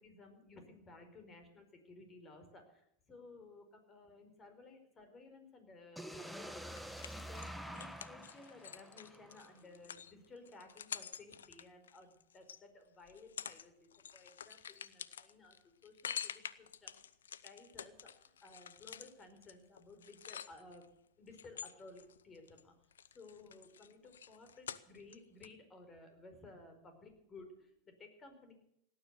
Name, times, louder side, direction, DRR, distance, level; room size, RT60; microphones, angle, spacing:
voice 1, 0.0-17.0 17.4-20.9 21.2-22.7 23.1-28.5, left 3 dB, 25° left, 7 dB, 4.7 m, -57 dB
sound 1, 6.0-9.9, equal, ahead, 1.3 m, -48 dB
sound 2, 6.8-12.6 13.1-13.7 13.9-20.9 21.3-22.6 22.9-25.2 25.4-25.5, left 8 dB, 85° left, 0.7 m, -48 dB
18.0 x 10.0 x 8.2 m, 0.75 s
hypercardioid pair, 100°, 0 cm